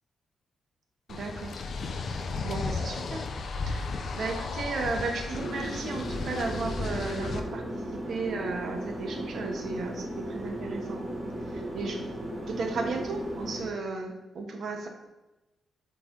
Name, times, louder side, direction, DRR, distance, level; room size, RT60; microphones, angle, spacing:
sound 1, 1.1-7.4, left 3 dB, 50° left, 0.5 m, -34 dB
voice 1, 1.1-1.6 2.1-3.2 3.7-3.8 4.1-11.0 11.5-12.1 12.5-14.9, right 3 dB, 55° right, 3 dB, 1.0 m, -34 dB
sound 2, 5.3-13.7, right 1 dB, 15° right, 1.4 m, -36 dB
8.0 x 3.3 x 3.7 m, 1.0 s
cardioid pair, 140°, 0 cm